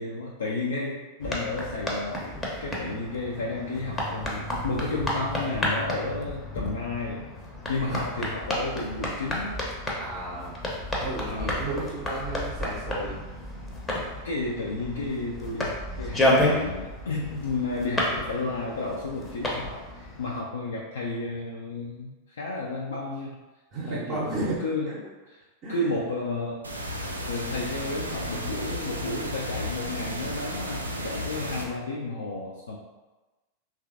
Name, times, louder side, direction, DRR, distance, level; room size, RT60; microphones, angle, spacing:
voice 1, 0.0-2.3 2.6-7.3 7.7-9.6 11.3-11.7 14.2-23.4 23.9-24.9 25.7-26.7 27.3-32.8, left 2 dB, 65° left, -3 dB, 0.3 m, -32 dB
sound 1, 1.2-20.4, left 1 dB, 15° left, 0.6 m, -31 dB
voice 2, 10.0-10.6 11.0-13.3 23.7-25.0 25.6-26.0, right 2 dB, 40° right, -7 dB, 0.6 m, -34 dB
sound 2, 26.6-31.6, equal, 80° right, 0.3 m, -33 dB
3.0 x 2.3 x 2.4 m, 1.1 s
figure-of-eight pair, 90°, 0 cm